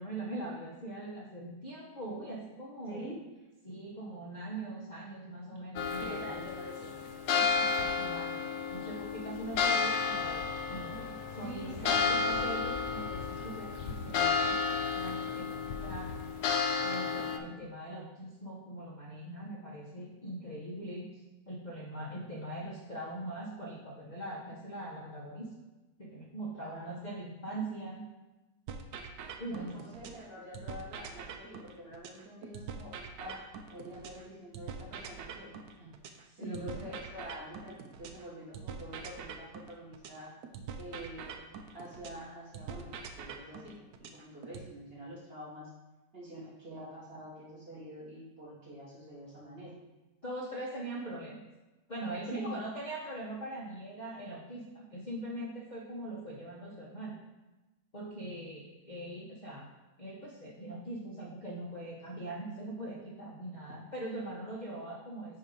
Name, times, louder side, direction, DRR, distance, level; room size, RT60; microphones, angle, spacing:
voice 1, 0.0-3.1 3.6-6.5 7.3-8.4 8.7-16.3 16.8-25.5 26.0-28.0 29.4-29.8 36.3-36.7 50.2-51.4 51.9-57.1 57.9-59.7 60.0-65.4, right 1 dB, 35° left, -4 dB, 0.8 m, -42 dB
voice 2, 2.9-3.2 6.0-7.0 11.4-12.1 26.6-27.0 29.5-32.9 33.2-36.0 36.4-40.3 40.8-41.4 41.7-45.7 46.1-49.8 52.3-52.6, equal, 35° right, -6 dB, 1.8 m, -46 dB
sound 1, 5.8-17.4, left 5 dB, 70° left, 1.0 m, -32 dB
sound 2, 28.7-30.2 30.5-34.2 34.5-38.2 38.5-42.2 42.5-44.7, right 6 dB, 75° right, 1.1 m, -44 dB
7.9 x 2.8 x 5.3 m, 1.1 s
omnidirectional pair, 1.8 m